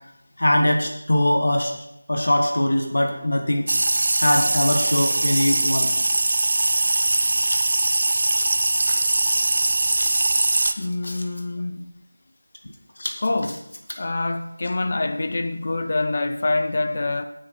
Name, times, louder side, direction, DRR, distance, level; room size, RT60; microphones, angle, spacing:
voice 1, 0.4-1.7 2.1-3.7 4.2-6.2 7.5-7.6 8.3-8.5 8.9-9.0 9.4-9.5 10.0-10.2 10.5-10.7 11.0-11.2 13.0-13.1, left 1 dB, 55° left, 1.4 m, -22 dB
sound 1, 3.7-10.7, right 2 dB, 40° right, 0.5 m, -21 dB
voice 2, 10.8-11.9 13.2-13.6 14.0-17.3, left 2 dB, 35° left, 0.7 m, -25 dB
16.5 x 6.7 x 4.5 m
figure-of-eight pair, 170°, 0 cm